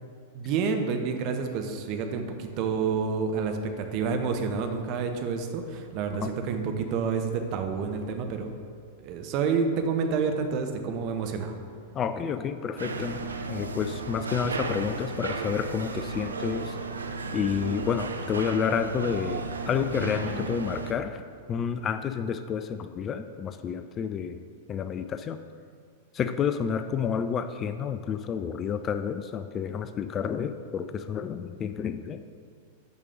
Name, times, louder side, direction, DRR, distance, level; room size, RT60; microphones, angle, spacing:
voice 1, 0.3-8.5 9.0-11.5, right 5 dB, 40° right, 5 dB, 0.9 m, -29 dB
voice 2, 11.9-16.8 17.3-21.2 21.5-24.4 24.7-25.4 26.1-32.2, left 7 dB, 25° left, 10 dB, 0.3 m, -30 dB
sound 1, 12.8-20.9, right 3 dB, 75° right, 0.5 m, -34 dB
6.9 x 5.2 x 6.5 m, 2.2 s
figure-of-eight pair, 95°, 0 cm